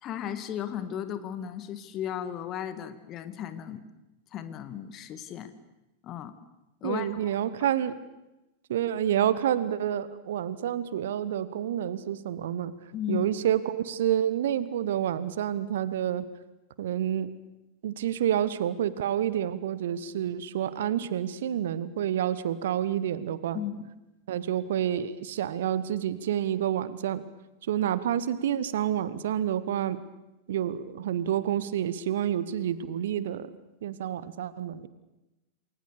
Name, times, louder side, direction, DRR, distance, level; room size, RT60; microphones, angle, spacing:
voice 1, 0.0-3.8 4.3-5.5 6.0-6.3 6.8-7.4 12.9-13.3 23.5-23.9, left 10 dB, 35° left, 11 dB, 1.9 m, -35 dB
voice 2, 6.8-8.0 8.7-12.7 13.1-16.3 16.8-17.3 17.8-23.6 24.3-27.2 27.7-30.0 30.5-33.5 33.8-34.9, right 10 dB, 60° right, 16 dB, 1.2 m, -28 dB
28.5 x 21.5 x 6.7 m, 0.98 s
figure-of-eight pair, 90°, 0 cm